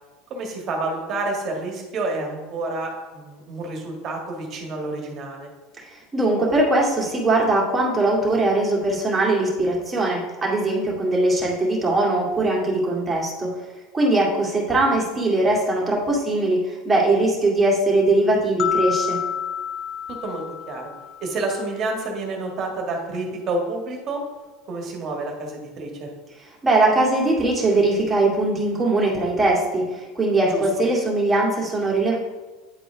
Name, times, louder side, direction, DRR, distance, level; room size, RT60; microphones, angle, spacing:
voice 1, 0.3-5.5 20.1-20.9 21.2-24.2 24.7-26.1 30.5-30.6, right 2 dB, 40° right, 1 dB, 1.7 m, -29 dB
voice 2, 5.9-13.5 13.9-19.2 26.6-32.2, right 2 dB, 15° right, -4 dB, 2.2 m, -21 dB
sound 1, 18.6-21.7, left 8 dB, 40° left, 0.5 m, -29 dB
9.5 x 4.2 x 3.4 m, 1.2 s
supercardioid pair, 115°, 0 cm